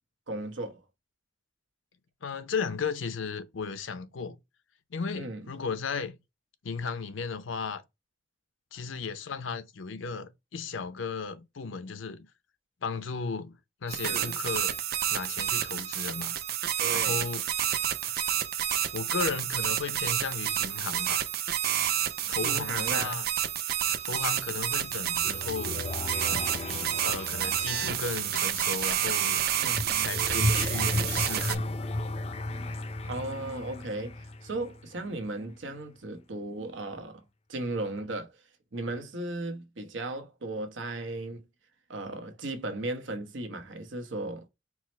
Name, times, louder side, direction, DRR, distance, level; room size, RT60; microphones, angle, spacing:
voice 1, 0.3-0.8 5.1-5.4 14.0-14.4 16.8-17.2 18.1-18.2 22.0-22.1 22.4-23.2 23.9-24.0 29.6-29.9 32.4-32.7 33.0-37.2 37.5-38.3 38.7-41.4 41.9-44.5, right 2 dB, 75° right, 0.9 m, -36 dB
voice 2, 2.2-4.4 4.9-6.2 6.6-7.8 8.7-12.3 12.8-14.7 15.1-16.4 16.9-17.4 18.9-21.2 22.3-23.3 24.0-25.8 27.0-29.5 30.0-31.7, left 5 dB, 85° left, 0.6 m, -35 dB
sound 1, 13.9-31.6, right 10 dB, 55° right, 0.4 m, -29 dB
sound 2, 24.7-35.3, left 2 dB, 30° left, 0.4 m, -35 dB
4.7 x 2.0 x 4.2 m
head